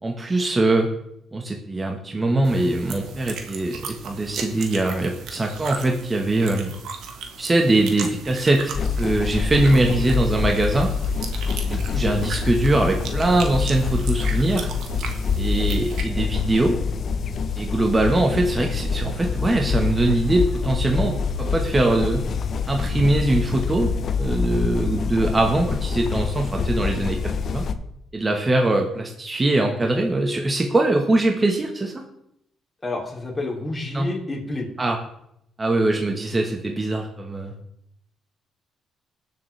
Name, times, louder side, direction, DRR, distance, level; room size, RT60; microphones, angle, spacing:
voice 1, 0.0-0.9 1.3-6.7 7.4-10.9 11.6-14.7 15.4-16.8 17.6-22.2 22.7-27.6 28.1-32.0 33.9-34.1 34.8-35.0 35.6-37.5, right 2 dB, 25° right, 2 dB, 1.3 m, -22 dB
sound 1, 2.4-16.0, right 5 dB, 80° right, 1.5 m, -37 dB
sound 2, 8.7-27.7, left 5 dB, 55° left, 0.8 m, -26 dB
voice 2, 32.8-34.7, left 2 dB, 15° left, -2 dB, 3.0 m, -29 dB
20.5 x 7.0 x 3.3 m, 0.76 s
cardioid pair, 90°, 0 cm